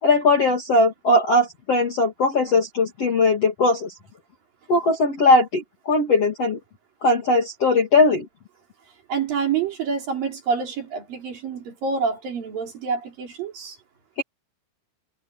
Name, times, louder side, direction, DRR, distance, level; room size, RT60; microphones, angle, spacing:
voice 1, 0.0-3.9 4.7-6.6 7.0-8.3, left 2 dB, 40° left, 2.5 m, -19 dB
voice 2, 9.1-13.8, right 5 dB, 45° right, 5.0 m, -27 dB
omnidirectional pair, 6.0 m